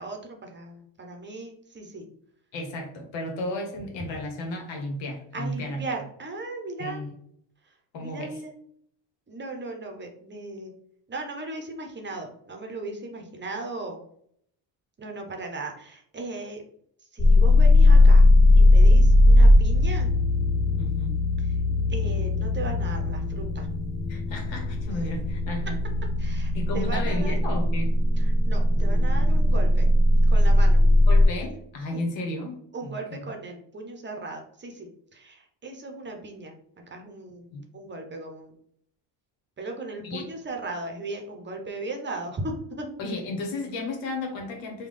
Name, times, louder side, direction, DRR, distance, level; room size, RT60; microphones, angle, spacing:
voice 1, 0.0-2.0 5.3-7.0 8.0-8.5 9.3-10.7 11.1-14.0 15.0-16.6 17.1-18.3 18.6-20.1 21.9-23.7 26.2-27.3 28.4-29.9 30.3-30.8 31.9-32.0 32.7-36.5 36.9-38.5 39.6-42.9, right 2 dB, 25° right, 3 dB, 0.7 m, -37 dB
voice 2, 2.5-5.9 6.8-7.2 7.9-8.4 20.8-21.1 24.1-25.8 26.5-27.9 31.1-33.3 37.5-37.6 40.0-40.2 43.0-44.9, left 2 dB, 85° left, 2 dB, 1.1 m, -33 dB
sound 1, 17.2-31.2, left 1 dB, 20° left, 0.4 m, -19 dB
3.5 x 2.3 x 3.3 m, 0.66 s
cardioid pair, 105°, 44 cm